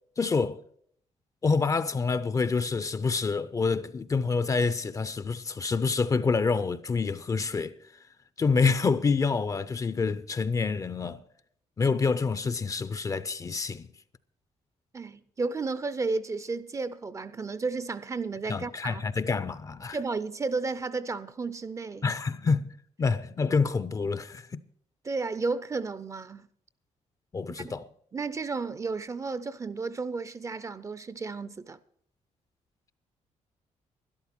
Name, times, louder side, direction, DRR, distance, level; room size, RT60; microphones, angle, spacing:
voice 1, 0.2-0.6 1.4-7.7 8.4-11.2 11.8-13.9 18.5-20.0 22.0-22.7 23.0-24.6 27.3-27.9, left 4 dB, 25° left, 0.5 m, -27 dB
voice 2, 14.9-19.1 19.9-22.1 25.0-26.4 27.6-27.7 28.1-31.8, right 4 dB, 25° right, 0.5 m, -33 dB
12.5 x 11.5 x 6.0 m
cardioid pair, 140°, 12 cm